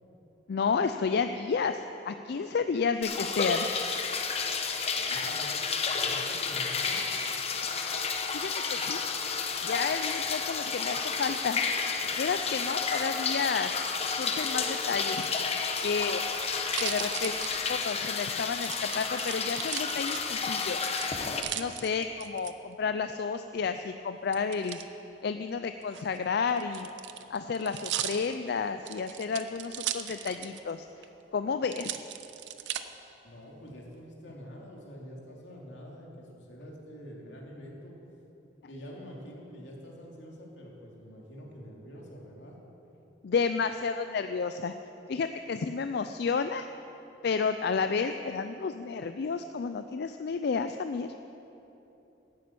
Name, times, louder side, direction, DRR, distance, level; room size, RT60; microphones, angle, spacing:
voice 1, 0.5-3.7 8.3-9.1 9.6-11.6 12.1-13.7 14.1-15.3 15.8-16.2 16.8-17.3 17.7-20.8 21.6-24.8 25.2-26.9 27.3-30.9 31.3-31.9 43.2-44.7 45.1-46.7 47.2-51.1, left 5 dB, 65° left, 9 dB, 0.4 m, -31 dB
sound 1, 3.0-21.4, left 5 dB, 35° left, 0.9 m, -31 dB
voice 2, 4.9-7.1 33.2-38.0 38.7-42.6, equal, 85° left, -2 dB, 2.6 m, -46 dB
sound 2, 15.6-18.1 18.6-20.6 21.0-22.5 24.3-24.9 25.8-30.7 31.0-31.1 31.7-32.8 33.4-34.0, right 11 dB, 80° right, 0.6 m, -38 dB
11.5 x 8.7 x 8.6 m, 3.0 s
head